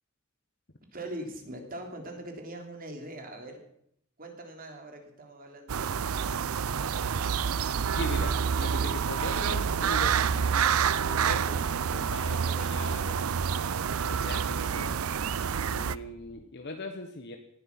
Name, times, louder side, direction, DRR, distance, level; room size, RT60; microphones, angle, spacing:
voice 1, 0.9-3.6 4.2-6.5, right 1 dB, 45° right, 3 dB, 3.4 m, -42 dB
sound 1, 5.7-15.9, right 7 dB, 90° right, 0.5 m, -28 dB
voice 2, 7.9-10.6 11.0-11.7 11.9-13.2 13.5-15.0 15.7-17.4, left 2 dB, 55° left, 5 dB, 1.4 m, -40 dB
sound 2, 10.7-16.4, left 1 dB, 35° left, 3.9 m, -49 dB
18.5 x 12.5 x 6.1 m, 0.72 s
head